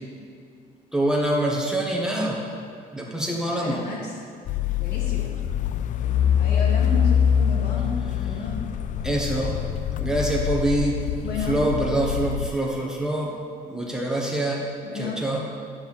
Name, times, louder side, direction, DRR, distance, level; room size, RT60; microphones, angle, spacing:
voice 1, 0.9-2.4 2.9-3.8 9.0-9.6 10.0-11.0 11.5-13.3 13.6-14.7 14.9-15.4, right 1 dB, 5° right, -2 dB, 1.4 m, -25 dB
voice 2, 3.5-4.2 4.8-5.3 6.4-8.6 11.2-11.6 14.8-15.4, left 3 dB, 70° left, -3 dB, 2.4 m, -32 dB
sound 1, 4.5-12.5, left 9 dB, 50° left, 0.4 m, -24 dB
10.0 x 4.6 x 7.2 m, 2.4 s
cardioid pair, 110°, 17 cm